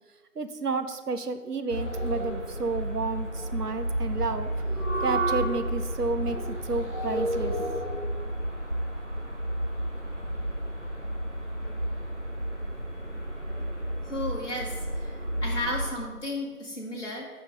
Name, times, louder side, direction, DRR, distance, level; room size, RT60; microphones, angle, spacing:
voice 1, 0.4-4.5 5.0-7.7, right 3 dB, 85° right, 9 dB, 0.8 m, -31 dB
sound 1, 1.7-15.9, right 1 dB, 50° right, 1.2 m, -31 dB
voice 2, 14.0-17.3, left 1 dB, 50° left, -3 dB, 1.7 m, -34 dB
6.5 x 5.8 x 3.9 m, 1.3 s
figure-of-eight pair, 180°, 45 cm